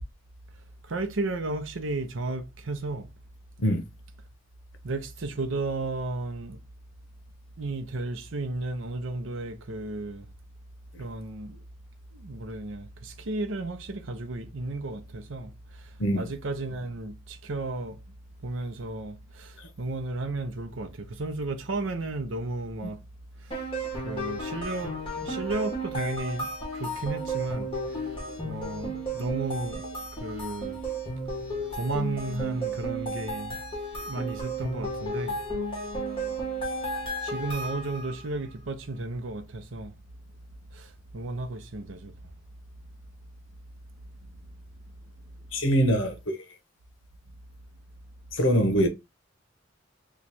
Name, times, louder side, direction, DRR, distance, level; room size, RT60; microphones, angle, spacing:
voice 1, 0.9-3.1 4.8-6.6 7.6-10.3 11.0-11.6 12.1-18.0 18.4-23.0 23.4-23.5 24.0-28.0 28.4-30.8 31.7-33.6 34.0-35.4 37.2-39.9 40.7-42.1, right 2 dB, 85° right, 0.7 m, -33 dB
sound 1, 23.5-38.2, right 1 dB, 30° left, 1.4 m, -33 dB
voice 2, 45.5-46.4 48.3-48.9, equal, 80° left, 0.9 m, -23 dB
3.0 x 2.4 x 4.1 m
head